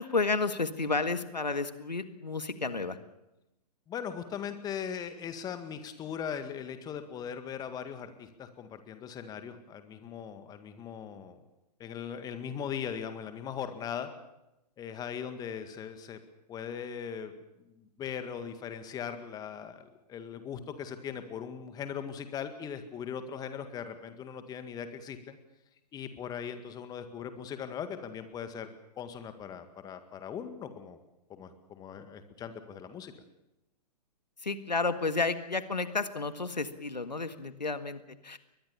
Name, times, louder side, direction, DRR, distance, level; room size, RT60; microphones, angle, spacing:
voice 1, 0.0-3.0 34.4-38.4, left 3 dB, 90° left, 11 dB, 1.7 m, -31 dB
voice 2, 3.9-11.4 11.8-14.1 14.8-16.2 16.5-17.3 17.8-25.4 25.9-28.7 29.0-31.0 31.3-33.1, left 8 dB, 20° left, 9 dB, 1.9 m, -39 dB
22.5 x 20.5 x 7.1 m, 0.91 s
figure-of-eight pair, 120°, 21 cm